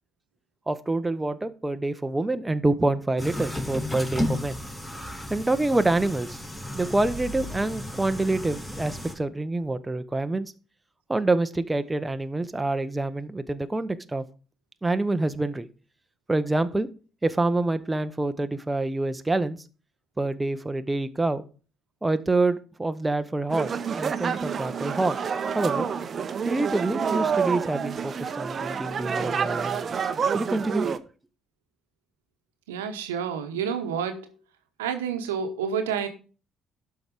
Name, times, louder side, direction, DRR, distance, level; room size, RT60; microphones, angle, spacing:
voice 1, 0.7-4.6 5.3-6.4 6.7-10.5 11.1-14.2 14.8-15.7 16.3-16.9 17.2-19.6 20.2-21.4 22.0-25.2 25.5-25.9 26.4-29.9 30.3-30.9, right 2 dB, 15° right, 0.8 m, -26 dB
sound 1, 3.2-9.1, left 1 dB, 10° left, 2.8 m, -33 dB
sound 2, 23.5-31.0, right 6 dB, 45° right, 0.7 m, -28 dB
voice 2, 32.7-34.3 34.8-36.1, right 7 dB, 80° right, 1.0 m, -29 dB
12.0 x 4.8 x 5.2 m
figure-of-eight pair, 50°, 0 cm